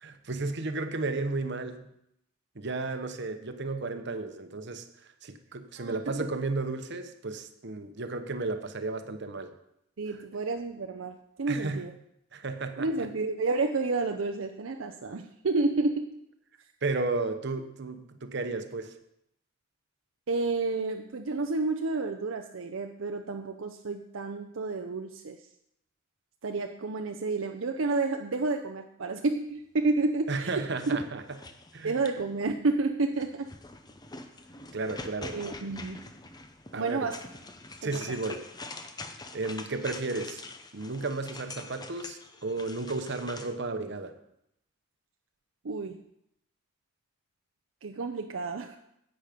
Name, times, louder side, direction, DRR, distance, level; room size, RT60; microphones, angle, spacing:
voice 1, 0.0-1.9 2.5-4.8 5.2-9.5 11.5-11.8 12.3-12.9 16.8-18.9 30.3-31.2 31.7-31.9 34.7-35.4 36.7-37.1 37.8-38.4 39.3-40.4 40.7-44.1, right 3 dB, 55° right, 8 dB, 1.0 m, -33 dB
voice 2, 5.8-6.3 10.0-11.9 12.8-16.2 20.3-25.5 26.4-31.0 31.8-33.5 35.3-36.0 36.7-37.2 37.8-38.0 45.6-46.0 47.8-48.8, right 3 dB, 75° right, 4 dB, 0.6 m, -30 dB
sound 1, 30.6-32.4 33.1-43.5, left 3 dB, 20° left, 0.7 m, -45 dB
10.5 x 8.2 x 5.2 m, 0.78 s
head